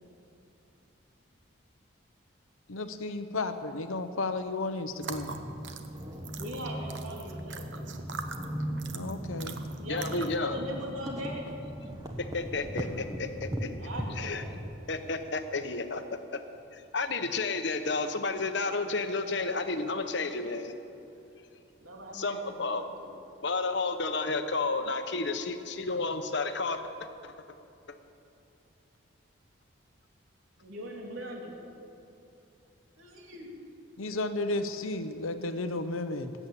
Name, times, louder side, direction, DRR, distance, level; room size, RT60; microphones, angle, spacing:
voice 1, 2.7-5.5 8.9-9.6 34.0-36.3, left 2 dB, 80° left, 9 dB, 0.9 m, -33 dB
sound 1, 4.9-10.5, right 5 dB, 60° right, 1.0 m, -43 dB
sound 2, 5.0-14.8, equal, 20° right, 1.2 m, -38 dB
voice 2, 6.4-7.9 9.8-11.5 13.8-14.9 21.8-23.2 30.6-31.5 33.0-33.5, equal, 80° right, -1 dB, 3.1 m, -40 dB
voice 3, 9.9-10.6 12.2-13.7 14.2-14.4 14.9-16.4 16.7-20.7 22.1-22.8 23.4-26.8 27.2-27.3, left 3 dB, 55° left, 8 dB, 1.0 m, -31 dB
20.0 x 8.5 x 8.4 m, 2.8 s
head